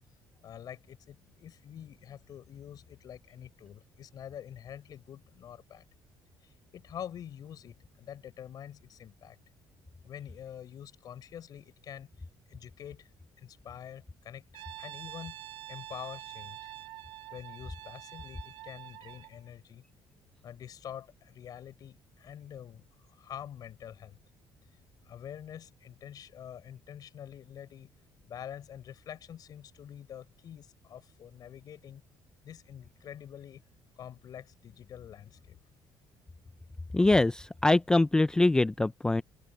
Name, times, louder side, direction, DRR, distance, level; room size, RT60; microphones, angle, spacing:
voice 1, 0.4-5.8 6.4-9.4 10.0-12.1 12.5-13.1 13.4-14.4 14.8-16.7 17.3-19.8 20.4-22.8 23.1-24.2 25.0-27.9 28.2-32.0 32.4-33.6 34.0-35.6, left 9 dB, 50° left, 6.3 m, -46 dB
Brass instrument, 14.5-19.4, right 14 dB, 85° right, 2.9 m, -46 dB
voice 2, 36.9-39.2, left 2 dB, 10° left, 0.4 m, -24 dB
open air
cardioid pair, 160°, 9 cm